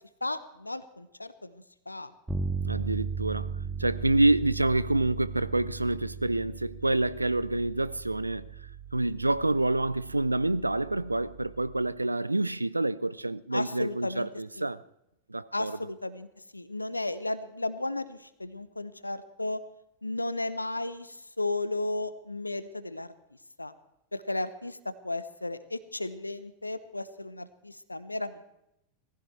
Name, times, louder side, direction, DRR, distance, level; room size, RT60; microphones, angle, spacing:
voice 1, 0.2-2.1 13.5-14.3 14.6-14.7 15.5-16.3 16.5-19.6 20.0-23.1 23.6-23.7 24.1-24.8 25.0-28.4, left 2 dB, 85° left, 0.9 m, -34 dB
Bass guitar, 2.3-12.0, right 5 dB, 10° right, 1.8 m, -38 dB
voice 2, 2.6-8.5 8.9-14.8 15.3-15.8, right 2 dB, 85° right, 0.4 m, -27 dB
18.5 x 15.5 x 4.6 m
figure-of-eight pair, 90°, 0 cm